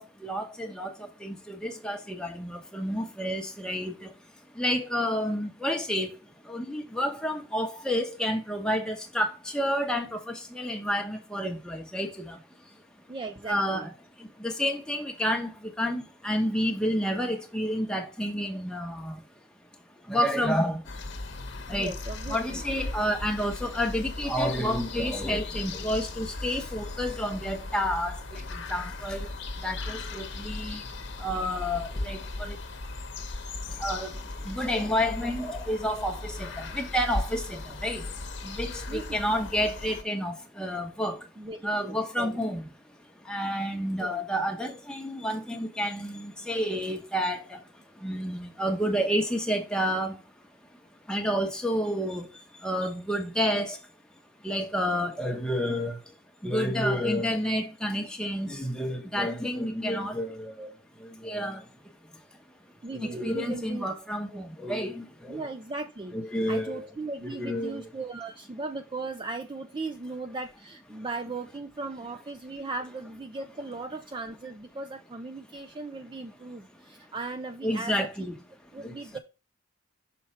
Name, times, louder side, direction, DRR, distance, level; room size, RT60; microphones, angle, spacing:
voice 1, 0.0-12.8 13.5-13.9 14.2-19.2 20.0-21.0 21.7-21.9 22.3-32.6 33.7-41.3 41.6-50.3 50.7-50.8 51.1-53.9 54.4-61.7 62.1-62.2 62.9-65.4 66.1-66.9 67.2-67.9 77.6-78.3 78.7-79.2, equal, 5° left, 1.0 m, -30 dB
voice 2, 13.1-13.9 21.7-22.6 38.9-39.7 41.4-42.4 44.0-44.2 62.8-63.9 64.3-64.4 65.3-66.2 66.5-78.1 78.7-79.2, right 3 dB, 25° right, 0.4 m, -38 dB
sound 1, 20.8-40.0, left 2 dB, 60° left, 1.0 m, -37 dB
6.2 x 4.5 x 4.2 m
head